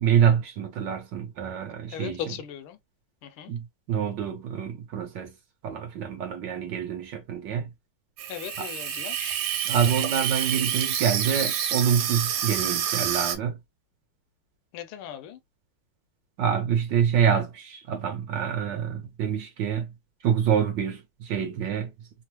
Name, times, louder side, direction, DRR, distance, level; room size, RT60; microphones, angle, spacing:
voice 1, 0.0-2.4 3.5-5.3 5.6-7.7 8.6-8.7 9.7-13.6 16.4-19.9 20.2-21.9, right 8 dB, 65° right, 1.2 m, -26 dB
voice 2, 1.9-2.8 3.2-3.5 8.3-9.4 14.7-15.4, left 10 dB, 80° left, 1.4 m, -38 dB
Water tap faucet / Sink (filling or washing), 8.2-13.4, right 9 dB, 90° right, 1.5 m, -28 dB
3.5 x 2.0 x 2.9 m
omnidirectional pair, 2.4 m